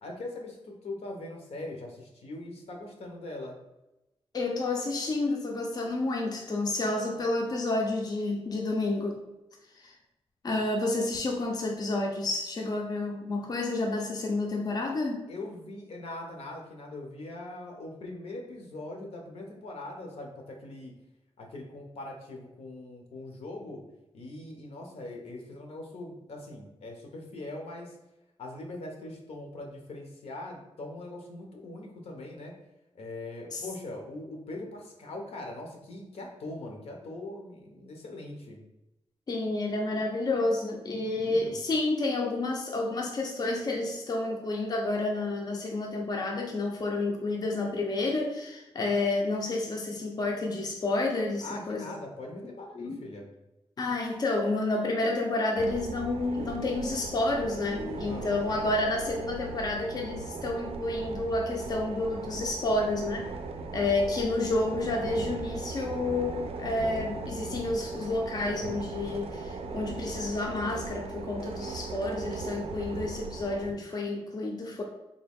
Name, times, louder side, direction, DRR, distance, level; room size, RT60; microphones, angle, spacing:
voice 1, 0.0-3.6 15.3-20.9 21.4-23.8 24.1-27.9 28.4-32.5 32.9-38.6 41.1-41.6 51.4-53.3 58.0-58.3, left 2 dB, 85° left, 1 dB, 0.8 m, -41 dB
voice 2, 4.3-9.2 9.8-9.9 10.4-15.2 33.5-33.6 39.3-51.8 52.7-53.1 53.8-63.3 63.7-74.8, left 2 dB, 40° left, 0 dB, 0.5 m, -30 dB
sound 1, 55.6-73.7, right 3 dB, 70° right, 0.4 m, -38 dB
3.6 x 2.3 x 3.5 m, 0.96 s
wide cardioid pair, 145°, 10 cm